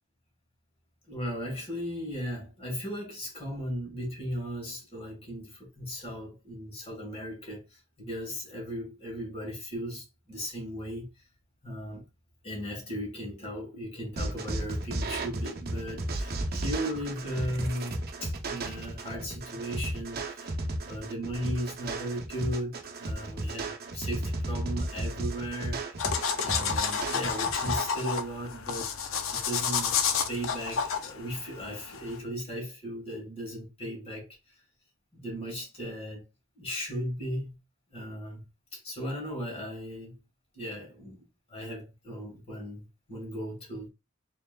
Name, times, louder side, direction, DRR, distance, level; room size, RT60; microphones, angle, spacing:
voice 1, 1.1-11.1 11.6-12.0 12.4-20.5 20.8-28.9 29.3-29.9 30.3-34.3 35.1-36.3 36.6-37.6 37.9-38.4 38.7-40.2 40.5-41.2 41.5-43.9, equal, 30° left, 1.9 m, -36 dB
sound 1, 14.2-27.8, right 2 dB, 50° right, 0.7 m, -34 dB
sound 2, 26.0-32.2, left 6 dB, 70° left, 0.5 m, -30 dB
4.5 x 3.0 x 2.4 m
head